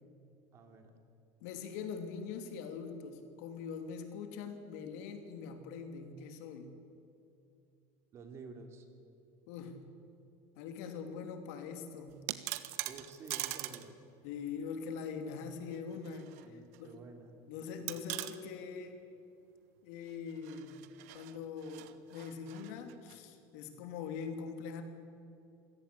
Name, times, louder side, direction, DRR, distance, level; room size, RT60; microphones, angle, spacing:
voice 1, 0.5-0.9 8.1-8.9 12.9-14.0 16.4-17.3, right 4 dB, 35° right, 5 dB, 3.0 m, -50 dB
voice 2, 1.4-6.8 9.5-9.8 10.6-12.2 14.2-16.9 17.5-19.0 19.8-24.8, left 6 dB, 75° left, 6 dB, 3.0 m, -43 dB
sound 1, 12.1-13.9 14.2-14.3 15.7-16.5 16.7-16.8 17.9-18.4 20.3-23.2, right 17 dB, 80° right, 1.3 m, -42 dB
27.0 x 17.0 x 8.6 m, 2.7 s
cardioid pair, 155°, 8 cm